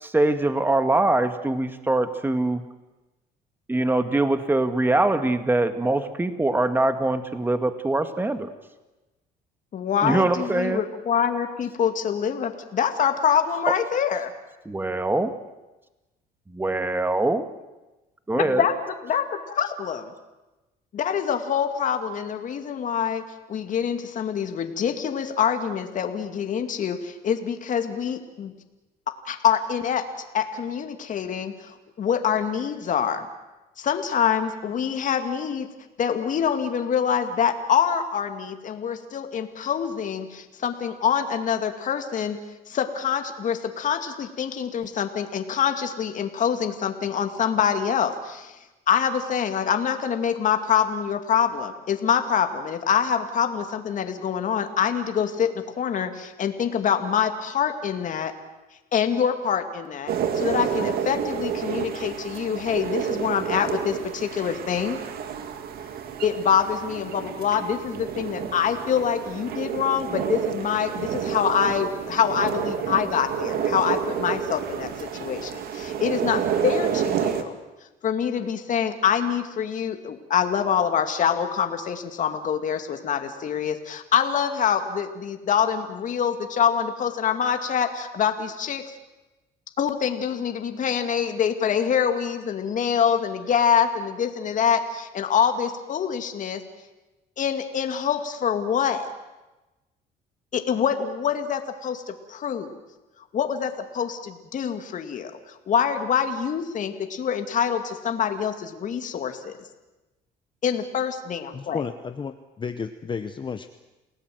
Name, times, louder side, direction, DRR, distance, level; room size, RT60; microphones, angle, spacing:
voice 1, 0.0-2.6 3.7-8.5 10.0-10.8 14.7-15.3 16.5-17.4 18.3-18.7, right 2 dB, 10° right, 9 dB, 1.9 m, -23 dB
voice 2, 9.7-14.3 18.3-18.7 19.0-20.1 20.9-28.5 29.2-30.0 30.3-33.3 33.8-35.7 36.0-42.4 42.7-48.6 48.9-58.3 58.9-65.0 66.2-77.6 78.0-88.9 89.8-96.6 97.4-99.1 100.5-102.7 103.3-109.6 110.6-111.8, left 8 dB, 50° left, 7 dB, 2.3 m, -25 dB
sound 1, 60.1-77.4, right 8 dB, 65° right, 2.3 m, -29 dB
voice 3, 111.5-113.7, left 5 dB, 30° left, 9 dB, 0.9 m, -32 dB
28.5 x 18.0 x 7.8 m, 1.1 s
cardioid pair, 110°, 17 cm